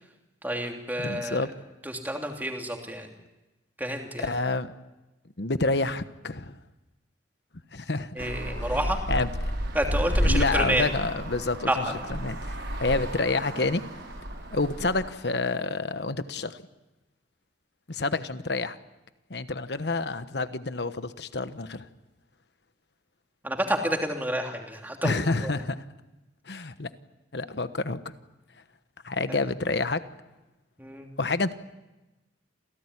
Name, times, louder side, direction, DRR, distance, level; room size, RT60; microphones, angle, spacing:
voice 1, 0.4-1.4 1.8-3.1 3.8-4.3 8.1-9.1 9.7-10.9 11.7-11.9 23.4-25.5 29.3-29.4 30.8-31.1, right 1 dB, 10° right, 2 dB, 3.0 m, -29 dB
voice 2, 1.0-1.5 4.2-4.7 5.4-6.6 7.7-8.3 8.6-8.8 9.1-9.3 10.2-13.8 14.5-16.6 17.9-18.8 19.3-21.9 25.0-25.8 26.5-26.9 27.3-28.0 29.0-30.0 31.2-31.5, left 3 dB, 60° left, 12 dB, 1.2 m, -28 dB
Traffic noise roadway noise, 8.2-15.1, equal, 70° right, 6.3 m, -31 dB
28.0 x 17.5 x 9.8 m, 1.1 s
head